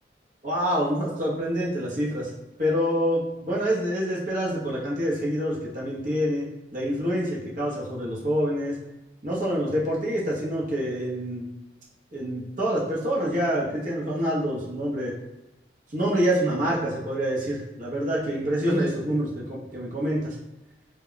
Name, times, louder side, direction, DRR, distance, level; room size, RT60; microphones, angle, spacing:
voice 1, 0.4-2.3 2.6-6.4 6.7-8.7 9.2-11.5 12.1-15.1 15.9-20.3, equal, 45° right, -5 dB, 0.7 m, -26 dB
2.2 x 2.1 x 3.8 m, 0.97 s
head